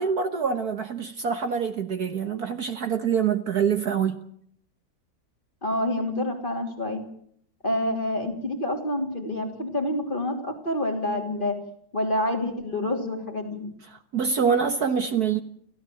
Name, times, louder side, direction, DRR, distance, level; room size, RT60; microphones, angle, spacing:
voice 1, 0.0-4.2 13.9-15.4, right 6 dB, 55° right, 1.6 m, -25 dB
voice 2, 5.6-7.0 7.6-11.6 11.9-13.7, left 1 dB, 25° left, 3.4 m, -27 dB
30.0 x 13.0 x 7.7 m
omnidirectional pair, 2.1 m